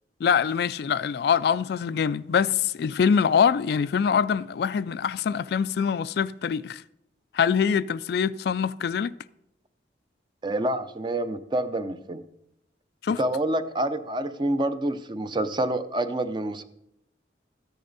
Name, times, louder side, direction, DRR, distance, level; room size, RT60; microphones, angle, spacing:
voice 1, 0.2-6.8 7.3-9.1 13.0-13.2, left 7 dB, 60° left, 0.3 m, -24 dB
voice 2, 10.4-12.2 13.2-16.6, right 1 dB, 25° right, 0.6 m, -27 dB
13.5 x 10.0 x 4.0 m
head